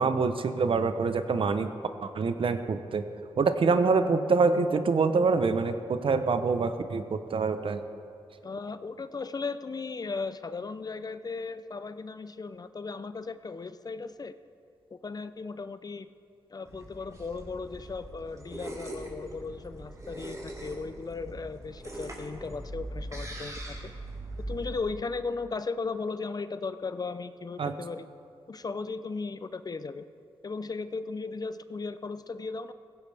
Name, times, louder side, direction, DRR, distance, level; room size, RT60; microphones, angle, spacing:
voice 1, 0.0-1.7 2.0-3.0 3.4-7.8 27.6-27.7, right 4 dB, 60° right, 9 dB, 0.9 m, -25 dB
voice 2, 8.4-14.4 14.9-16.1 16.5-23.9 24.5-28.1 28.5-30.1 30.4-32.7, left 4 dB, 40° left, 12 dB, 0.6 m, -36 dB
sound 1, 16.6-24.8, right 1 dB, 30° right, 4.0 m, -41 dB
16.5 x 16.0 x 3.5 m, 2.5 s
cardioid pair, 60°, 10 cm